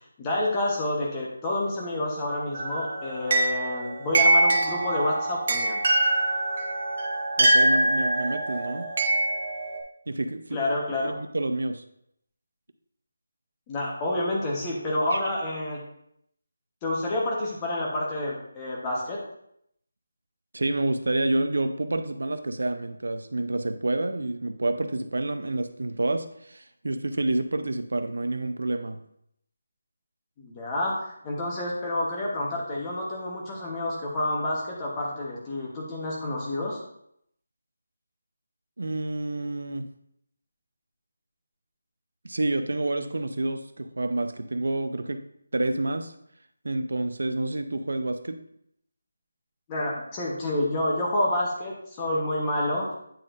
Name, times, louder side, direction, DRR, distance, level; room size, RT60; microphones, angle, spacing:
voice 1, 0.2-5.8 10.5-11.1 13.7-15.8 16.8-19.2 30.4-36.8 49.7-52.9, left 1 dB, 15° left, -3 dB, 1.0 m, -28 dB
sound 1, 2.5-9.8, right 2 dB, 40° right, 0.8 m, -24 dB
voice 2, 7.4-8.9 10.1-10.6 11.0-11.8 15.1-15.2 20.5-29.0 38.8-39.9 42.2-45.2 45.5-46.1 46.6-48.4, right 2 dB, 80° right, 9 dB, 0.6 m, -28 dB
9.1 x 4.2 x 2.5 m, 0.73 s
figure-of-eight pair, 175°, 0 cm